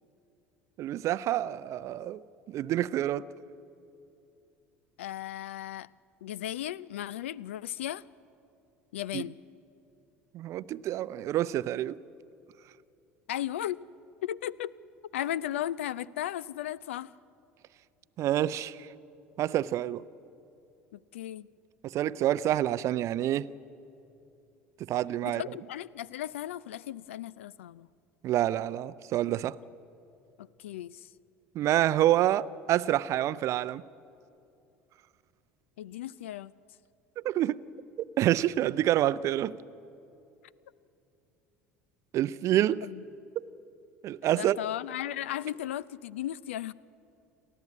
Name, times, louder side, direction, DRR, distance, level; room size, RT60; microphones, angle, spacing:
voice 1, 0.8-3.3 9.1-9.2 10.3-12.0 18.2-18.9 19.4-20.0 21.8-23.5 24.9-25.4 28.2-29.6 31.5-33.8 37.2-37.6 38.2-39.5 42.1-42.9 43.4-43.5 44.0-44.6, right 13 dB, 45° right, 0.5 m, -27 dB
voice 2, 5.0-5.9 6.2-8.0 8.9-9.4 13.3-13.8 14.2-14.7 15.1-17.1 20.9-21.5 25.2-27.9 30.6-31.0 35.8-36.5 42.8-43.0 44.2-46.7, left 12 dB, 70° left, 0.4 m, -36 dB
28.5 x 12.5 x 8.5 m
figure-of-eight pair, 65°, 7 cm